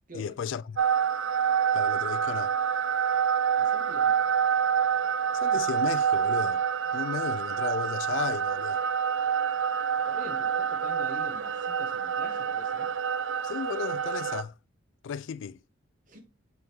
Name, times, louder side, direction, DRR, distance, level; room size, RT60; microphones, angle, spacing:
voice 1, 0.1-0.8 1.7-2.5 5.3-6.6 6.9-8.8 13.4-14.5 15.0-15.6, left 7 dB, 65° left, 0.3 m, -34 dB
sound 1, 0.8-14.4, right 8 dB, 70° right, 0.5 m, -27 dB
voice 2, 3.6-4.3 10.1-12.9 16.1-16.2, equal, 40° right, 1.0 m, -45 dB
8.1 x 3.6 x 4.4 m
head